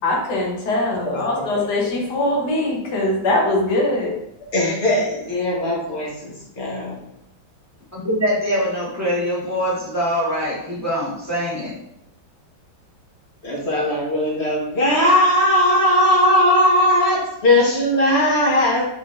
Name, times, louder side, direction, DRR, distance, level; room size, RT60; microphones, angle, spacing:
voice 1, 0.0-4.1, left 2 dB, 60° left, 1.5 m, -21 dB
voice 2, 4.5-7.0 13.4-18.9, left 1 dB, 35° left, 1.4 m, -18 dB
voice 3, 7.9-11.7, equal, 10° right, 1.5 m, -23 dB
5.5 x 3.7 x 2.6 m
omnidirectional pair, 2.2 m